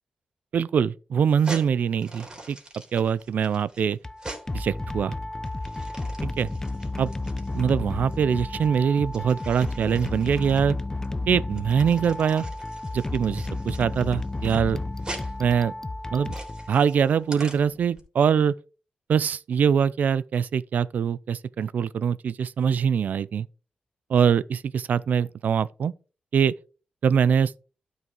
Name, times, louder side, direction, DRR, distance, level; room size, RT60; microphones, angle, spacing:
voice 1, 0.5-2.6 2.9-4.0 4.5-5.1 6.2-6.5 7.0-7.1 7.5-10.8 11.3-12.5 12.9-14.8 15.4-15.7 16.1-16.3 16.7-18.5 19.1-23.5 24.1-25.9 26.3-26.5 27.0-27.5, right 7 dB, 70° right, 0.4 m, -23 dB
sound 1, 1.2-18.0, right 2 dB, 30° right, 3.3 m, -44 dB
sound 2, 3.9-17.1, left 2 dB, 20° left, 0.6 m, -32 dB
12.0 x 5.5 x 3.8 m
cardioid pair, 95°, 3 cm